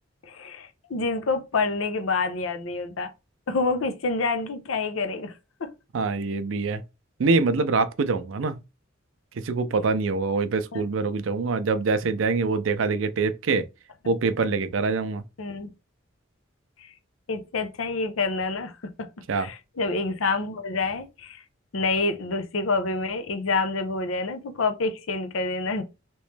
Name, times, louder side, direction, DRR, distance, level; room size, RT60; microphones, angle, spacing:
voice 1, 0.2-3.1 3.5-5.3 5.6-5.7 10.7-10.8 15.4-15.7 16.8-16.9 17.3-19.1 19.3-21.4 21.7-25.8, left 3 dB, 90° left, 0.6 m, -27 dB
voice 2, 5.9-6.8 7.2-8.5 9.4-13.6 14.1-15.2 19.3-19.5, right 4 dB, 70° right, 0.4 m, -24 dB
3.0 x 3.0 x 3.2 m
head